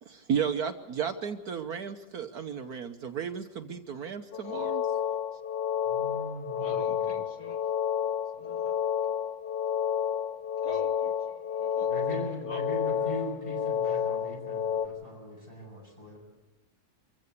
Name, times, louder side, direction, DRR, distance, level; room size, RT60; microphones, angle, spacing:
voice 1, 0.0-4.9, right 7 dB, 60° right, 7 dB, 1.4 m, -33 dB
sound 1, 4.3-14.9, left 8 dB, 75° left, 1.7 m, -30 dB
voice 2, 5.8-7.1 11.9-16.2, equal, 15° left, 1 dB, 7.8 m, -40 dB
voice 3, 6.6-7.6 8.4-8.8 10.6-11.9 12.5-12.6, left 3 dB, 55° left, 4 dB, 2.0 m, -44 dB
25.5 x 15.5 x 8.3 m, 1.2 s
omnidirectional pair, 1.9 m